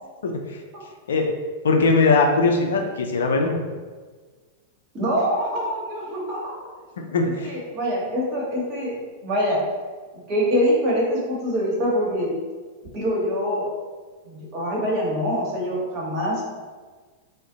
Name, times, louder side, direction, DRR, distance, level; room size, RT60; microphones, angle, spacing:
voice 1, 0.2-0.6 1.1-1.3 1.6-3.6 7.1-7.5, left 3 dB, 70° left, 3 dB, 0.4 m, -20 dB
voice 2, 4.9-6.6 7.4-9.6 10.3-12.3 12.9-13.7 14.2-16.4, equal, 40° right, -4 dB, 1.1 m, -24 dB
2.4 x 2.1 x 3.7 m, 1.4 s
figure-of-eight pair, 95°, 0 cm